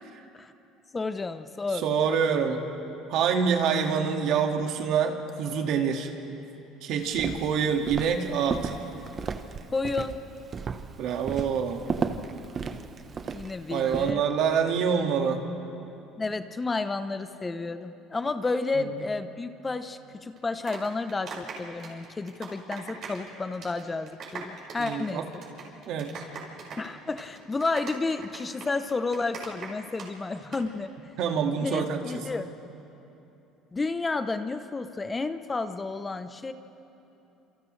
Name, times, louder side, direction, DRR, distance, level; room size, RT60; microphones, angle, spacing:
voice 1, 0.9-1.8 9.7-10.2 13.3-14.2 16.2-25.2 26.8-30.9 31.6-32.5 33.7-36.5, left 3 dB, 20° left, 10 dB, 0.9 m, -31 dB
voice 2, 1.8-2.6 3.1-6.1 6.8-8.7 11.0-11.8 13.7-15.4 18.7-18.9 24.8-25.3 25.9-26.2 31.2-32.2, right 7 dB, 65° right, 3 dB, 2.1 m, -26 dB
Walk footsteps, 7.1-14.1, right 5 dB, 35° right, 1.1 m, -34 dB
sound 1, 20.4-23.3 23.5-23.8 24.1-30.1 30.4-30.6, right 5 dB, 50° right, 5.7 m, -40 dB
29.0 x 27.5 x 3.4 m, 3.0 s
supercardioid pair, 105°, 0 cm